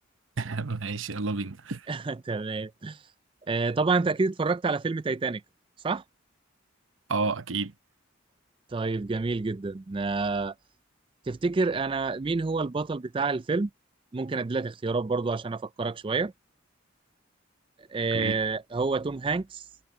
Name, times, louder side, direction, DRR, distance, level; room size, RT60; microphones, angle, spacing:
voice 1, 0.4-1.9 7.1-7.7 18.1-18.4, right 3 dB, 80° right, 1.0 m, -30 dB
voice 2, 1.9-3.0 3.5-5.4 5.8-6.0 8.7-10.5 11.3-13.7 14.1-16.3 17.9-19.6, right 4 dB, 25° right, 0.4 m, -28 dB
head